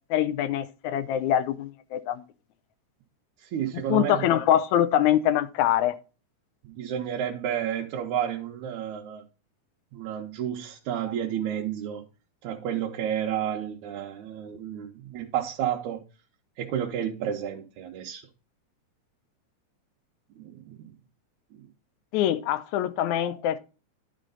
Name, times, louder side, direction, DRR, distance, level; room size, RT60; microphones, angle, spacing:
voice 1, 0.1-2.2 3.9-6.0 22.1-23.6, left 11 dB, 80° left, 1.9 m, -24 dB
voice 2, 3.4-4.3 6.6-9.2 9.9-12.0 12.4-16.0 16.6-18.2 20.4-20.9 21.5-21.6, right 10 dB, 75° right, 2.2 m, -31 dB
11.0 x 5.1 x 3.9 m
omnidirectional pair, 3.5 m